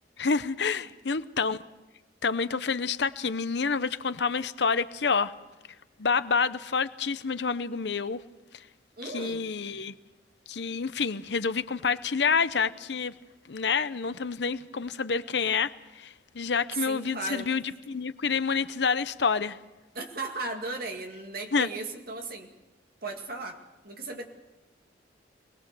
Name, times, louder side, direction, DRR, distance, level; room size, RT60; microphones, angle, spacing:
voice 1, 0.2-1.6 2.2-5.3 6.0-8.2 9.0-9.9 10.5-13.1 13.5-15.7 16.0-19.6 21.5-21.7, left 5 dB, 70° left, 0.7 m, -28 dB
voice 2, 9.0-9.4 16.7-17.5 19.9-22.5 23.0-24.2, right 3 dB, 55° right, 2.2 m, -36 dB
24.0 x 19.5 x 6.8 m
head